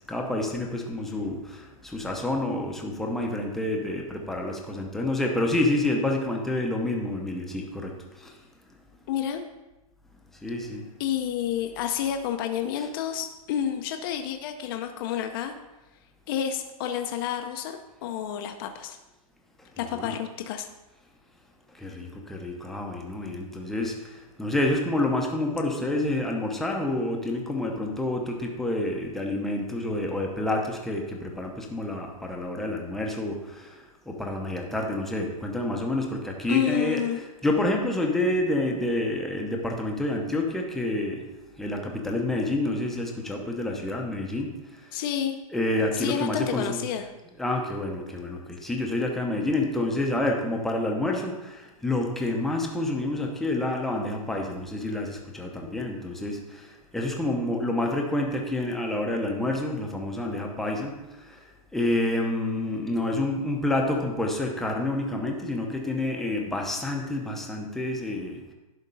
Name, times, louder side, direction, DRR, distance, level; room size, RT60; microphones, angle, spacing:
voice 1, 0.1-1.6 1.9-7.9 10.4-10.8 12.8-12.9 19.8-20.1 21.8-24.0 24.4-33.4 34.1-37.0 37.4-41.2 41.6-44.5 45.5-46.8 47.4-56.4 56.9-60.9 61.7-68.4, left 1 dB, ahead, 0 dB, 0.7 m, -28 dB
voice 2, 9.1-9.4 11.0-15.5 16.3-19.0 19.8-20.7 36.5-37.2 44.9-45.4 45.9-47.1, left 9 dB, 35° left, 5 dB, 0.6 m, -29 dB
11.0 x 3.7 x 5.3 m, 1.1 s
hypercardioid pair, 155°, 19 cm